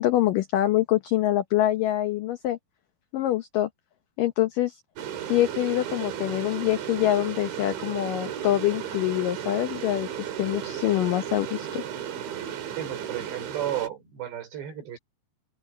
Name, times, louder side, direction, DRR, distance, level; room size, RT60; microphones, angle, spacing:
voice 1, 0.0-2.6 3.1-3.7 4.2-4.8 5.3-10.1 10.4-11.8, left 14 dB, 85° left, 1.9 m, -25 dB
sound 1, 5.0-13.9, right 9 dB, 85° right, 4.7 m, -34 dB
voice 2, 12.7-15.0, right 11 dB, 70° right, 6.7 m, -33 dB
open air
omnidirectional pair, 5.1 m